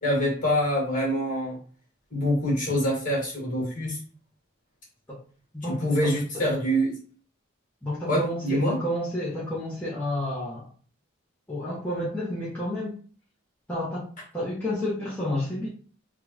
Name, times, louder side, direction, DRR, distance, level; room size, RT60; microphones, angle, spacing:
voice 1, 0.0-1.6 2.1-4.0 5.7-7.0 8.1-8.8, equal, 40° left, -3 dB, 1.7 m, -25 dB
voice 2, 5.5-6.5 7.8-10.7 11.5-12.9 13.7-14.1 14.3-15.7, left 1 dB, 5° left, -8 dB, 0.8 m, -31 dB
3.5 x 2.3 x 3.1 m, 0.41 s
head